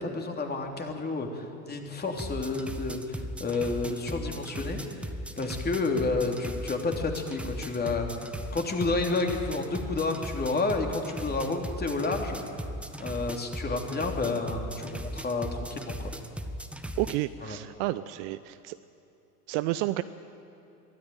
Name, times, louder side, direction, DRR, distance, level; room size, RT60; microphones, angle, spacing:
voice 1, 0.0-4.8 5.4-8.1 8.5-12.4 13.0-16.1 17.4-17.6, left 3 dB, 20° left, 2 dB, 3.0 m, -30 dB
sound 1, 2.2-17.2, equal, 5° right, 1.2 m, -37 dB
voice 2, 17.0-18.7 19.5-20.0, right 17 dB, 45° right, 13 dB, 0.7 m, -30 dB
23.0 x 13.5 x 9.4 m, 2.7 s
figure-of-eight pair, 80°, 47 cm